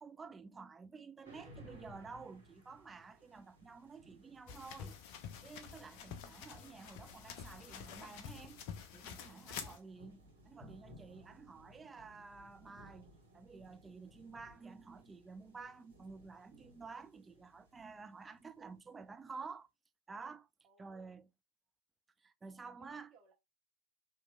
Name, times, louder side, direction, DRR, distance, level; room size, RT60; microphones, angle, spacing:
voice 1, 0.0-5.0 5.4-8.6 8.9-13.1 13.3-19.7 20.1-20.5 20.8-21.3 22.2-23.1, right 4 dB, 15° right, 0.4 m, -51 dB
sound 1, 1.2-19.1, equal, 75° right, 2.0 m, -61 dB
sound 2, 4.5-9.8, left 7 dB, 45° left, 0.6 m, -48 dB
voice 2, 20.6-21.2 22.6-23.3, right 5 dB, 35° right, 1.4 m, -64 dB
4.2 x 3.0 x 2.3 m
figure-of-eight pair, 90°, 0 cm